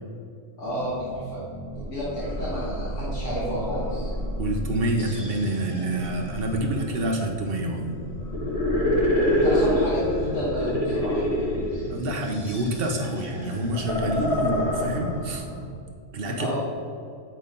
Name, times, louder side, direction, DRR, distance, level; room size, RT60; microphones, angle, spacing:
voice 1, 0.6-1.4 1.7-4.1 9.4-11.4 16.4-16.6, equal, 65° left, -9 dB, 2.1 m, -30 dB
sound 1, 0.6-15.6, equal, 30° left, 1.4 m, -28 dB
voice 2, 4.4-8.0 11.9-15.4 16.1-16.6, right 1 dB, 50° right, 2 dB, 1.1 m, -27 dB
9.1 x 4.1 x 5.2 m, 2.4 s
omnidirectional pair, 1.4 m